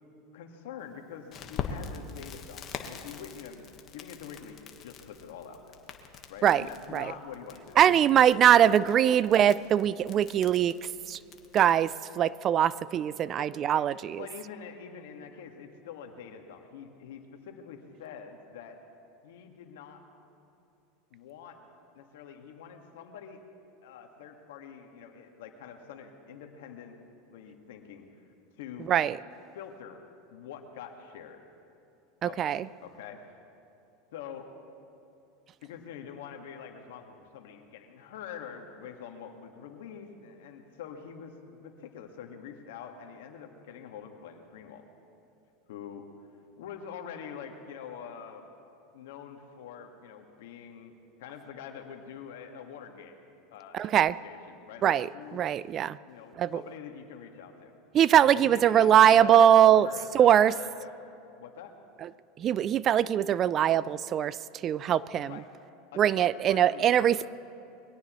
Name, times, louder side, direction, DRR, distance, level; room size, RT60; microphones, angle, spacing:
voice 1, 0.3-5.7 6.3-9.4 13.4-13.9 14.2-18.8 19.2-20.0 21.1-21.6 21.9-23.4 23.8-27.0 27.3-28.2 28.6-28.9 29.5-30.0 30.3-31.4 32.2-33.2 34.1-34.5 35.6-44.8 45.7-46.0 46.6-48.5 48.9-50.9 51.2-53.2 53.5-55.4 56.1-57.7 58.2-60.9 61.4-61.7 65.1-65.5 65.9-67.3, left 7 dB, 80° left, 4 dB, 1.6 m, -45 dB
Crackle, 1.3-11.8, left 6 dB, 40° left, 1.3 m, -44 dB
voice 2, 7.8-10.8 11.1-11.2 11.5-14.2 28.9-29.2 32.2-32.7 53.7-54.1 54.8-55.1 55.3-56.0 56.4-56.6 57.9-59.9 60.1-60.5 62.4-64.4 64.6-65.3 66.0-67.3, right 10 dB, 35° right, 19 dB, 0.3 m, -22 dB
22.5 x 17.0 x 3.1 m, 2.7 s
supercardioid pair, 120°, 0 cm